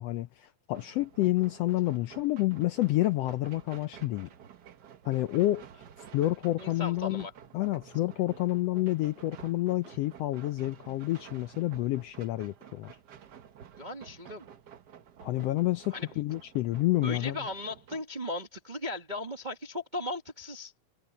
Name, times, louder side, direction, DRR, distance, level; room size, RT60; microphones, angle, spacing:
voice 1, 0.0-4.3 5.0-5.8 6.1-7.3 7.5-12.9 15.2-17.4, left 17 dB, 75° left, 1.5 m, -29 dB
sound 1, 0.7-18.0, right 8 dB, 90° right, 0.9 m, -52 dB
voice 2, 6.6-7.3 13.8-14.5 15.9-16.1 17.0-20.7, left 1 dB, 35° right, 0.7 m, -37 dB
omnidirectional pair, 3.4 m